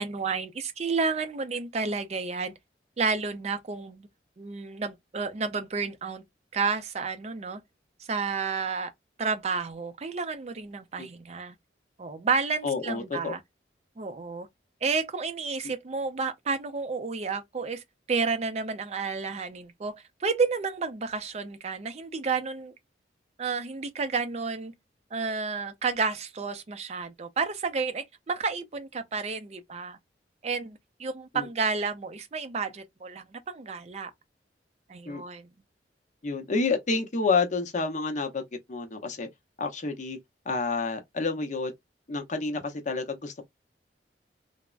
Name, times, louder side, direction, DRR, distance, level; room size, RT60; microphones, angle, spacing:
voice 1, 0.0-2.5 3.0-4.1 4.4-6.2 6.5-7.6 8.1-8.9 9.2-11.6 12.0-13.4 14.0-14.5 14.8-17.8 18.1-20.0 20.2-22.7 23.4-24.7 25.1-30.0 30.4-34.1 34.9-35.5, right 4 dB, 40° right, 0.4 m, -31 dB
voice 2, 12.6-13.3 31.3-31.5 35.1-35.2 36.2-39.3 39.6-40.2 40.5-41.7 42.1-43.4, left 4 dB, 45° left, 0.7 m, -29 dB
3.3 x 2.0 x 2.4 m
head